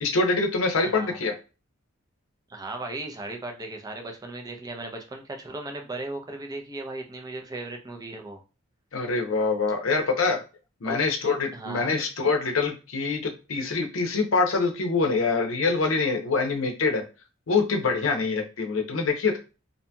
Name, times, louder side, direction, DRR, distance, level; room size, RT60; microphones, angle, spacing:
voice 1, 0.0-1.3 8.9-10.4 10.8-17.0 17.5-19.4, left 4 dB, 75° left, 5 dB, 0.6 m, -25 dB
voice 2, 0.8-1.2 2.5-8.4 9.9-10.0 10.8-11.0 11.5-12.0, right 2 dB, 20° right, 3 dB, 0.4 m, -37 dB
2.7 x 2.6 x 2.2 m, 0.31 s
head